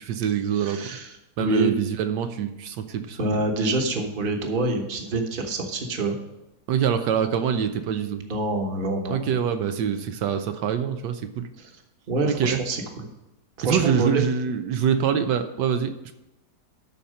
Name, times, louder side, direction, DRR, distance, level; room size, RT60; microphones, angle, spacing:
voice 1, 0.0-0.8 1.4-3.4 6.7-8.2 9.1-11.5 12.3-12.6 13.6-15.9, right 8 dB, 85° right, 8 dB, 1.3 m, -25 dB
voice 2, 0.5-1.7 3.2-6.2 8.3-9.3 11.6-11.7 12.1-13.1 13.6-14.2, right 2 dB, 35° right, 3 dB, 1.2 m, -26 dB
12.0 x 4.3 x 6.4 m, 0.92 s
omnidirectional pair, 1.9 m